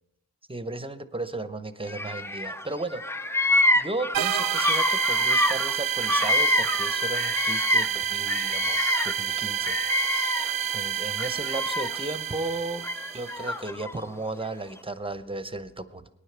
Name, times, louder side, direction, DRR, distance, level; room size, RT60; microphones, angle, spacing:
voice 1, 0.5-3.0 3.7-9.8 10.7-12.9 13.1-16.1, right 2 dB, 15° right, 12 dB, 0.8 m, -35 dB
Bird vocalization bird call bird song, 1.9-2.6 2.9-8.0 8.3-10.7 11.1-12.1 12.8-13.9, left 1 dB, 5° left, 0.4 m, -26 dB
sound 1, 4.1-13.5, right 9 dB, 65° right, 0.5 m, -29 dB
18.5 x 9.9 x 3.4 m, 0.86 s
cardioid pair, 50°, 37 cm